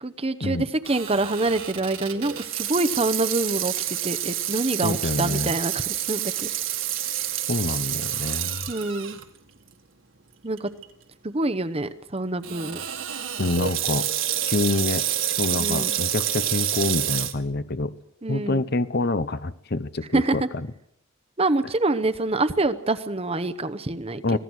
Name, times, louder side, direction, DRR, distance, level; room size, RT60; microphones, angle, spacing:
voice 1, 0.0-6.5 8.7-9.2 10.4-10.7 11.2-12.8 15.6-15.9 18.2-18.6 20.1-20.5 21.4-24.4, right 2 dB, 30° right, 10 dB, 0.9 m, -26 dB
Water tap faucet / Sink (filling or washing), 0.8-9.2 9.7-9.8 10.6-10.8 12.4-17.3, right 11 dB, 65° right, 2.0 m, -28 dB
voice 2, 4.8-5.5 7.5-8.7 13.4-14.1 14.4-15.1 15.4-17.9 18.3-20.4 24.2-24.4, left 2 dB, 50° left, 14 dB, 0.8 m, -26 dB
25.0 x 17.5 x 6.4 m, 0.77 s
head